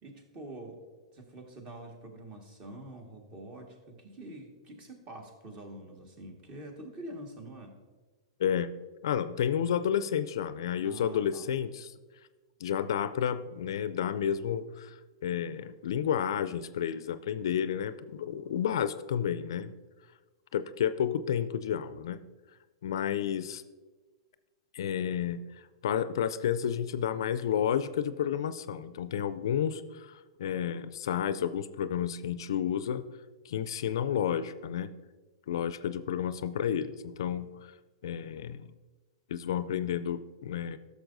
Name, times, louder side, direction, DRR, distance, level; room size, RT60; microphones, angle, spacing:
voice 1, 0.0-0.8 1.1-7.7 10.8-11.4, right 1 dB, 35° right, 3 dB, 1.7 m, -46 dB
voice 2, 9.0-11.9 12.6-19.7 20.5-22.2 22.8-23.6 24.7-25.4 25.8-33.1 33.4-34.9 35.5-37.5 38.0-38.7 39.3-40.8, left 9 dB, 65° left, 14 dB, 0.4 m, -31 dB
13.0 x 6.5 x 2.6 m, 1.3 s
hypercardioid pair, 110°, 3 cm